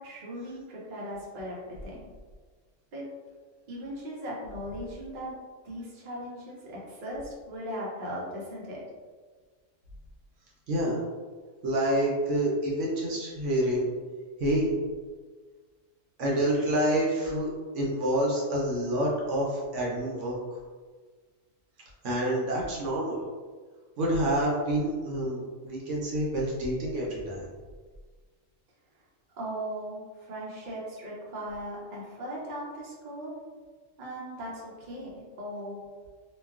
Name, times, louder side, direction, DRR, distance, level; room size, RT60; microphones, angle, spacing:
voice 1, 0.0-2.0 2.9-3.1 3.7-5.3 5.6-8.8 29.3-33.3 34.0-35.8, equal, 50° right, -5 dB, 0.7 m, -38 dB
voice 2, 10.7-11.0 11.6-13.9 14.4-14.7 16.2-20.4 22.0-23.2 24.0-27.5, right 1 dB, 70° right, -4 dB, 1.0 m, -27 dB
3.0 x 2.3 x 2.3 m, 1.5 s
omnidirectional pair, 1.3 m